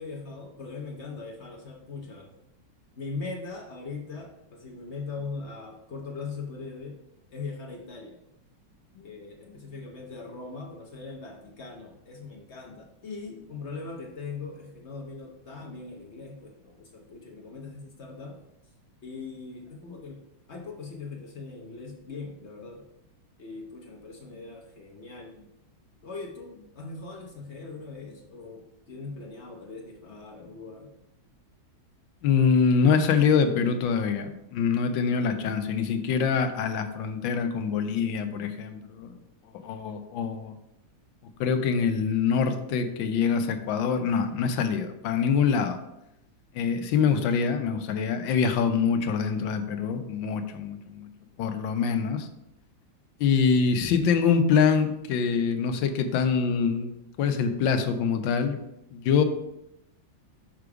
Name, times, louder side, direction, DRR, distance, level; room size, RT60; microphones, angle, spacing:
voice 1, 0.0-2.3 3.0-7.0 7.3-8.2 8.9-18.5 19.0-20.2 20.5-22.9 23.4-25.4 26.0-30.9, left 4 dB, 55° left, 1 dB, 0.8 m, -40 dB
voice 2, 32.2-39.1 39.6-40.5 41.4-45.8 46.5-51.1 51.4-52.3 53.2-58.6 58.9-59.2, left 6 dB, 75° left, 7 dB, 1.4 m, -25 dB
5.9 x 5.1 x 4.7 m, 0.86 s
omnidirectional pair, 2.2 m